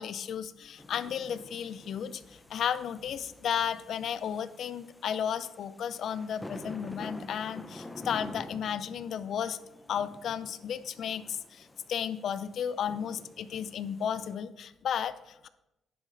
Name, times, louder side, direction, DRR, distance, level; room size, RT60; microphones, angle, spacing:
voice 1, 0.0-9.6 9.9-15.5, left 8 dB, 65° left, 14 dB, 0.4 m, -34 dB
sound 1, 0.8-14.3, left 1 dB, 10° left, 0.7 m, -48 dB
10.5 x 5.0 x 3.9 m, 0.92 s
cardioid pair, 90°, 0 cm